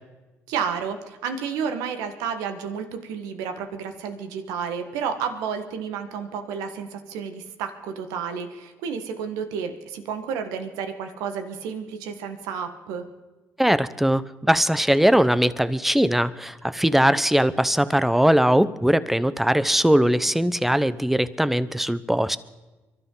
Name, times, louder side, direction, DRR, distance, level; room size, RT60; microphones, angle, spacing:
voice 1, 0.5-13.0, right 6 dB, 85° right, 7 dB, 1.5 m, -31 dB
voice 2, 13.6-22.4, equal, 5° right, 15 dB, 0.8 m, -20 dB
24.5 x 12.5 x 3.9 m, 1.1 s
supercardioid pair, 70°, 6 cm